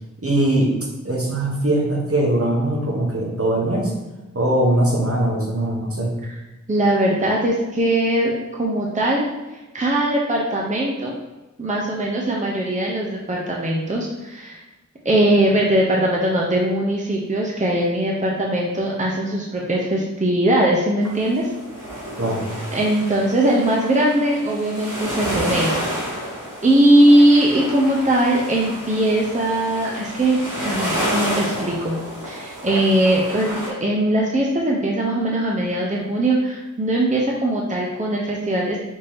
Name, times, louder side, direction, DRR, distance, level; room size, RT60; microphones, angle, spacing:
voice 1, 0.2-0.7 1.0-3.9 4.3-6.1 22.2-22.6, right 1 dB, 45° right, -1 dB, 1.0 m, -21 dB
voice 2, 6.7-11.1 11.6-14.6 15.0-21.5 22.7-25.8 26.1-26.2 26.6-38.8, right 1 dB, 25° right, -2 dB, 0.6 m, -20 dB
sound 1, 21.0-33.7, equal, 75° right, 1.4 m, -30 dB
5.3 x 2.8 x 3.4 m, 1.1 s
wide cardioid pair, 55°, 31 cm